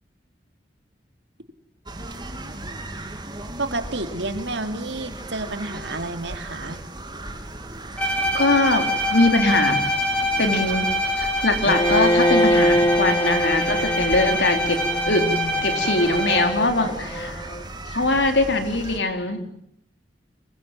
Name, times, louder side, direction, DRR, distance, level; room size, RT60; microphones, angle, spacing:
sound 1, 1.9-19.0, right 1 dB, 25° right, 2.9 m, -37 dB
voice 1, 3.6-6.8, right 2 dB, 75° right, 7 dB, 3.0 m, -30 dB
Bowed string instrument, 8.0-16.7, equal, 5° left, 6.5 m, -25 dB
voice 2, 8.3-9.8 10.4-10.9 11.2-15.3 15.6-17.4 17.9-19.6, left 2 dB, 75° left, 6 dB, 4.0 m, -22 dB
Bowed string instrument 2, 11.6-17.6, equal, 30° left, 2.4 m, -24 dB
26.0 x 23.0 x 9.1 m, 0.71 s
head